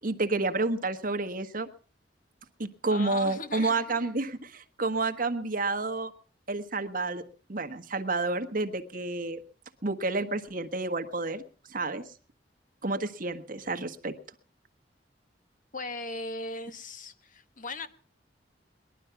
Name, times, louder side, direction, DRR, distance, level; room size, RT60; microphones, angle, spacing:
voice 1, 0.0-1.7 2.6-6.1 6.5-7.2 7.5-9.4 9.8-11.4 11.7-12.0 12.8-14.1, right 3 dB, 50° right, 8 dB, 1.3 m, -30 dB
voice 2, 2.9-3.8 15.7-17.9, left 3 dB, 50° left, 11 dB, 1.2 m, -38 dB
20.0 x 12.0 x 5.9 m, 0.42 s
head